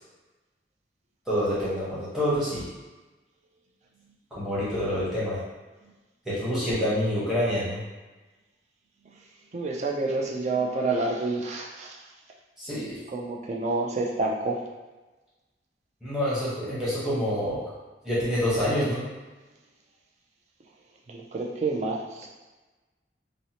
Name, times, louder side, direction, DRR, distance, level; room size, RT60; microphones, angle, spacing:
voice 1, 1.3-2.7 4.3-5.4 6.2-7.8 12.6-13.0 16.0-17.6 18.0-19.0, equal, 5° right, -11 dB, 0.9 m, -27 dB
voice 2, 9.5-12.0 13.1-14.6 21.1-22.3, right 3 dB, 40° right, -1 dB, 0.3 m, -28 dB
2.6 x 2.0 x 2.8 m, 1.2 s
head